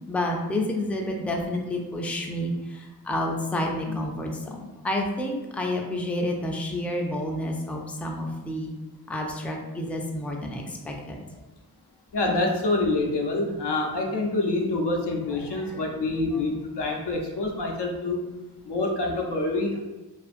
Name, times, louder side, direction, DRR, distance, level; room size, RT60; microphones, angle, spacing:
voice 1, 0.1-8.7 9.1-11.2 12.3-12.4 15.6-16.4, left 1 dB, 5° left, 1 dB, 0.3 m, -30 dB
voice 2, 12.1-18.3 18.6-19.8, left 2 dB, 80° left, 1 dB, 0.6 m, -26 dB
2.5 x 2.4 x 2.5 m, 1.1 s
wide cardioid pair, 40°, 41 cm